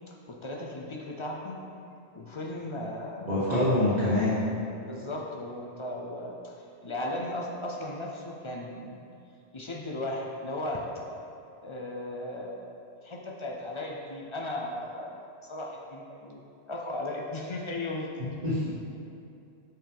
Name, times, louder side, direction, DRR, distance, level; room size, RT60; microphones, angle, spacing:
voice 1, 0.1-1.6 2.1-3.8 4.8-6.5 6.8-9.0 9.5-10.9 11.6-12.6 13.0-15.1 15.4-16.4 16.7-18.1, left 1 dB, 45° left, -1 dB, 0.4 m, -36 dB
voice 2, 3.2-4.4 18.4-18.7, left 1 dB, 40° right, -11 dB, 1.2 m, -25 dB
5.6 x 5.6 x 3.4 m, 2.6 s
omnidirectional pair, 1.2 m